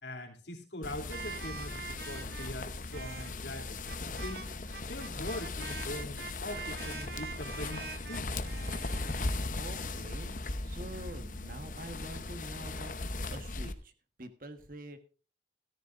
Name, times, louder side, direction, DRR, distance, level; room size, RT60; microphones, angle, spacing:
voice 1, 0.0-4.5 4.9-8.3, left 1 dB, 85° left, 3 dB, 3.0 m, -42 dB
sound 1, 0.8-13.7, left 2 dB, 45° left, 0.9 m, -38 dB
sound 2, 1.1-9.4, right 5 dB, 65° right, 1.1 m, -44 dB
voice 2, 9.5-10.3 10.6-13.9 14.2-15.0, right 1 dB, 50° right, 9 dB, 1.4 m, -46 dB
14.0 x 13.5 x 2.5 m, 0.36 s
head